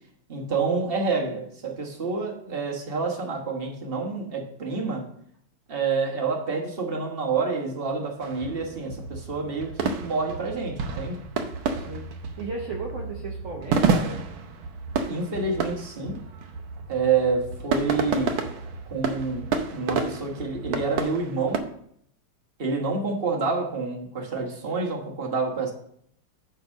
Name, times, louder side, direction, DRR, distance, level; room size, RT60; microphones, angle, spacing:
voice 1, 0.3-5.1 5.7-11.2 15.1-16.2 16.9-18.4 18.9-21.6 22.6-25.7, right 4 dB, 30° right, 1.2 m, -28 dB
sound 1, 8.2-21.6, right 5 dB, 70° right, 1.5 m, -30 dB
voice 2, 11.7-14.2 17.8-17.9, right 3 dB, 50° right, 0.9 m, -35 dB
9.7 x 3.6 x 6.3 m
omnidirectional pair, 2.4 m